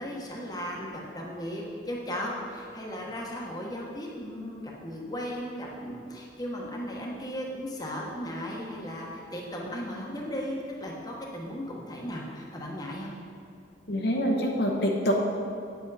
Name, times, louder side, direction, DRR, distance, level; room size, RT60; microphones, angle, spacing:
voice 1, 0.0-13.1, equal, 20° left, -2 dB, 1.1 m, -36 dB
voice 2, 13.9-15.1, equal, 60° left, -1 dB, 1.0 m, -25 dB
9.2 x 7.6 x 4.1 m, 2.4 s
head